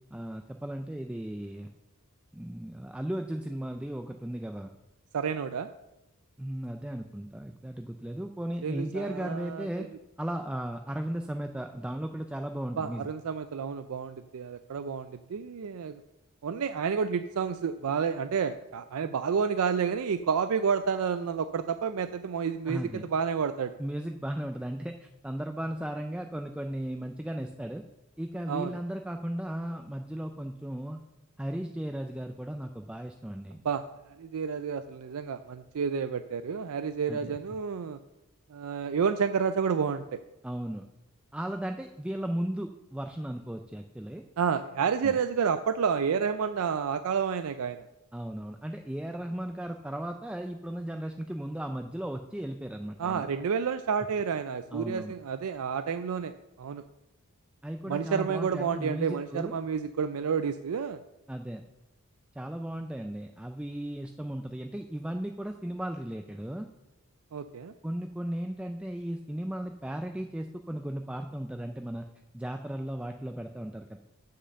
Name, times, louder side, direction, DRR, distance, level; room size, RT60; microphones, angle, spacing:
voice 1, 0.1-1.7 2.3-4.7 6.4-9.9 10.2-13.1 22.7-23.0 23.8-27.8 28.2-31.0 31.4-33.6 37.1-37.4 40.4-40.8 41.3-44.2 45.0-45.2 48.1-53.3 54.7-55.1 57.6-59.6 61.3-61.6 62.4-66.7 67.8-72.1 72.3-74.0, right 1 dB, 5° right, 5 dB, 0.3 m, -36 dB
voice 2, 5.1-5.7 8.6-9.7 12.8-16.0 16.4-23.8 28.5-28.7 33.6-33.8 34.2-38.0 38.5-40.2 44.4-47.8 53.0-56.3 56.6-56.8 57.9-61.0 67.3-67.7, right 6 dB, 85° right, 10 dB, 0.4 m, -30 dB
7.9 x 6.6 x 6.3 m, 0.93 s
head